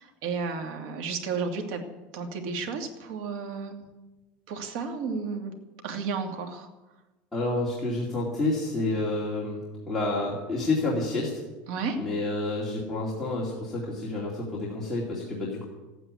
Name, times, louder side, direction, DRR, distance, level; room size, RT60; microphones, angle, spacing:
voice 1, 0.0-1.8 2.1-3.8 4.5-5.5 5.8-6.7 11.7-12.0, right 5 dB, 55° right, 4 dB, 2.6 m, -32 dB
voice 2, 7.3-11.4 12.0-15.6, left 2 dB, 5° left, -6 dB, 2.6 m, -29 dB
14.5 x 9.3 x 9.7 m, 1.1 s
cardioid pair, 175°, 5 cm